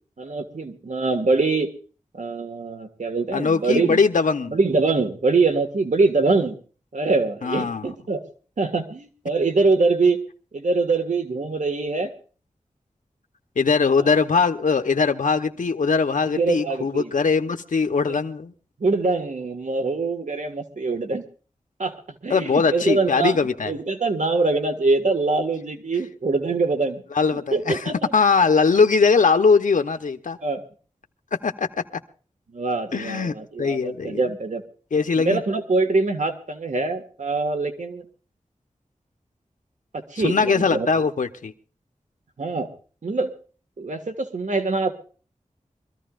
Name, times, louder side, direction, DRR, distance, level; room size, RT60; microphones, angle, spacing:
voice 1, 0.2-1.7 2.1-4.0 4.5-6.5 6.9-8.2 8.6-10.2 10.5-12.1 16.3-17.1 18.1-18.2 18.8-21.2 21.8-23.4 23.7-27.0 27.5-28.1 30.4-30.6 32.5-34.6 35.2-38.0 40.1-40.9 42.4-42.7 43.0-43.3 43.8-45.0, right 3 dB, 70° right, 1.8 m, -23 dB
voice 2, 3.3-4.6 7.4-7.9 13.6-18.5 22.3-23.7 27.1-30.4 31.4-31.7 32.9-34.2 34.9-35.4 40.2-41.5, left 5 dB, 85° left, 0.9 m, -21 dB
25.0 x 14.5 x 2.5 m
wide cardioid pair, 65°, 13 cm